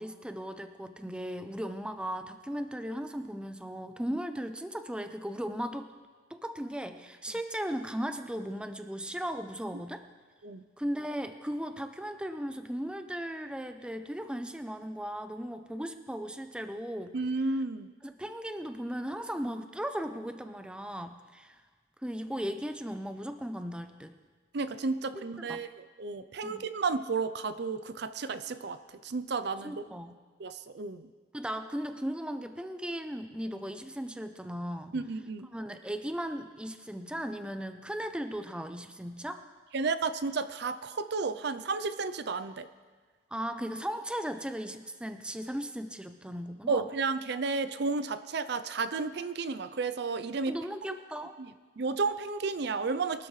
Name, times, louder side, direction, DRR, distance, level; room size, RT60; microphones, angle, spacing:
voice 1, 0.0-5.9 6.3-10.0 10.8-17.1 18.0-21.6 22.0-24.2 25.4-25.6 26.4-26.6 29.6-30.2 31.3-35.0 35.5-39.4 43.3-46.8 50.5-51.3, equal, 5° right, 8 dB, 0.6 m, -37 dB
voice 2, 17.1-17.9 24.5-29.9 30.4-31.1 34.9-35.5 39.7-42.7 46.7-50.6 51.8-53.3, right 4 dB, 60° right, 13 dB, 0.5 m, -32 dB
22.5 x 12.5 x 3.2 m, 1.5 s
head